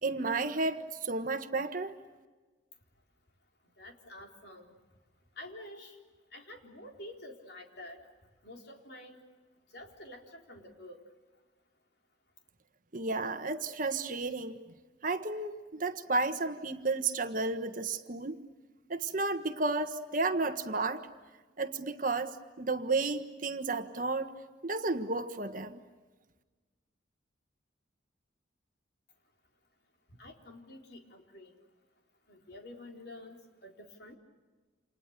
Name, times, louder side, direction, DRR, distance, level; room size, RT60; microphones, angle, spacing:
voice 1, 0.0-1.9 12.9-14.6 15.0-18.4 18.9-21.1 21.6-24.3 24.6-25.8, right 3 dB, 45° right, 8 dB, 1.4 m, -32 dB
voice 2, 3.8-4.8 5.3-6.0 6.3-8.1 8.4-9.2 9.7-11.0 30.1-31.6 32.3-34.1, left 1 dB, 60° left, 2 dB, 4.1 m, -49 dB
29.5 x 28.0 x 6.7 m, 1.3 s
head